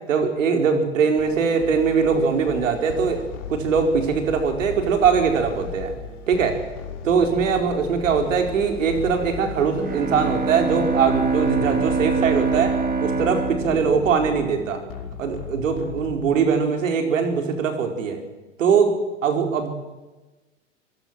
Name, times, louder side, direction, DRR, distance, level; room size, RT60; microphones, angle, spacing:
voice 1, 0.1-3.2 3.5-5.9 6.3-6.6 7.0-12.7 13.0-14.8 15.2-18.2 18.6-19.0 19.2-19.7, right 6 dB, 80° right, 5 dB, 4.4 m, -21 dB
sound 1, 1.2-16.6, left 6 dB, 65° left, 5.8 m, -37 dB
Bowed string instrument, 9.8-15.0, right 4 dB, 25° right, 2.7 m, -25 dB
25.5 x 16.5 x 7.4 m, 1.2 s
hypercardioid pair, 120°, 38 cm